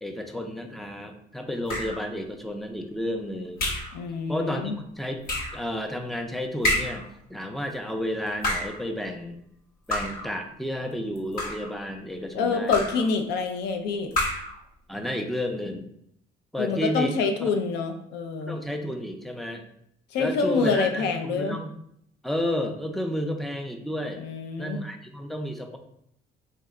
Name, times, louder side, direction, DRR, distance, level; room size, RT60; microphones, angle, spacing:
voice 1, 0.0-3.7 4.3-5.2 5.5-9.4 9.9-12.8 14.9-15.9 16.5-17.1 17.4-17.5 18.5-19.6 20.2-21.7 22.2-24.2 24.6-25.8, equal, ahead, 4 dB, 0.4 m, -31 dB
sound 1, 1.7-2.1 3.6-4.0 5.3-5.6 6.6-7.1 8.3-8.8 9.9-10.3 11.2-11.8 12.7-13.1 14.1-14.6, left 1 dB, 60° left, 1.0 m, -28 dB
voice 2, 3.9-4.7 12.3-14.1 16.6-18.6 20.1-21.6 24.2-24.8, left 4 dB, 85° left, 6 dB, 0.5 m, -26 dB
3.8 x 2.1 x 3.6 m, 0.72 s
cardioid pair, 110°, 17 cm